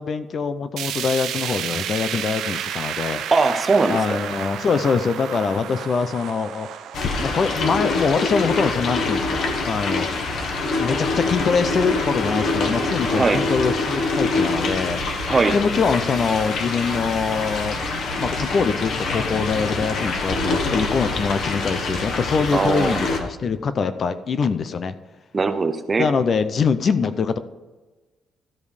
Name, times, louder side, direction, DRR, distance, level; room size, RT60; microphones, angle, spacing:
voice 1, 0.0-3.2 3.9-6.7 7.0-10.1 10.8-15.3 15.5-17.8 18.2-24.9 26.0-27.4, left 5 dB, 35° left, 12 dB, 0.5 m, -23 dB
sound 1, 0.8-10.9 11.3-11.4 11.8-11.9 12.7-12.8, right 9 dB, 75° right, 0.7 m, -32 dB
voice 2, 3.3-4.2 13.1-13.4 15.3-15.6 22.5-23.0 25.3-26.1, right 4 dB, 20° right, 10 dB, 0.6 m, -20 dB
sound 2, 6.9-23.2, left 3 dB, 55° left, 1.3 m, -25 dB
13.0 x 5.3 x 4.9 m, 1.2 s
cardioid pair, 170°, 0 cm